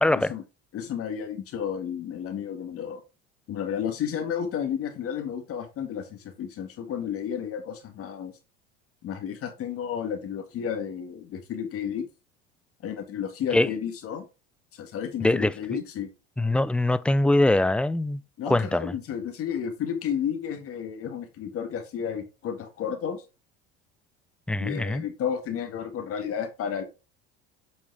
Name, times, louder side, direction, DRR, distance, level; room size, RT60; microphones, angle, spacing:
voice 1, 0.0-0.3 13.5-13.7 15.2-15.5 16.4-18.2 18.5-18.9 24.5-25.0, left 2 dB, 5° left, 0.3 m, -22 dB
voice 2, 0.7-3.0 3.5-8.3 9.0-12.1 12.8-14.2 14.7-16.1 18.4-23.2 24.6-26.8, left 8 dB, 50° left, 1.8 m, -32 dB
7.9 x 5.4 x 3.4 m
supercardioid pair, 90°, 29 cm